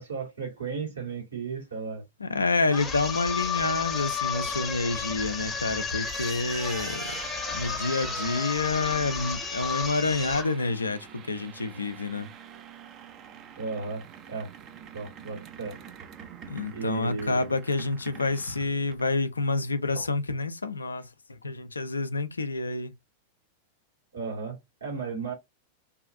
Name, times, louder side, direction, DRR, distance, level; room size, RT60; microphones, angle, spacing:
voice 1, 0.0-2.0 13.6-14.5 14.9-15.8 16.7-17.5 19.9-20.1 24.1-25.3, right 4 dB, 70° right, 1.5 m, -35 dB
voice 2, 2.2-7.2 7.5-12.3 16.5-22.9, left 3 dB, 80° left, 0.4 m, -28 dB
sound 1, 2.7-10.5, left 6 dB, 20° left, 0.7 m, -32 dB
sound 2, 5.8-19.3, right 8 dB, 35° right, 0.4 m, -44 dB
2.7 x 2.4 x 2.5 m
figure-of-eight pair, 90°, 0 cm